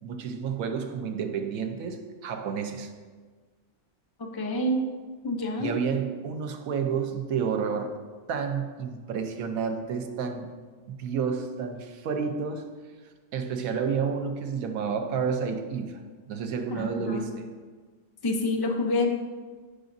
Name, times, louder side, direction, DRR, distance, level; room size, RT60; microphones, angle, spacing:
voice 1, 0.0-2.9 5.6-7.9 8.3-10.5 10.9-12.6 13.3-16.0 16.3-17.5, right 6 dB, 90° right, 5 dB, 1.1 m, -30 dB
voice 2, 4.2-4.9 5.2-5.7 16.7-17.2 18.2-19.1, left 1 dB, 25° left, 2 dB, 0.5 m, -27 dB
11.5 x 4.9 x 2.6 m, 1.5 s
omnidirectional pair, 1.4 m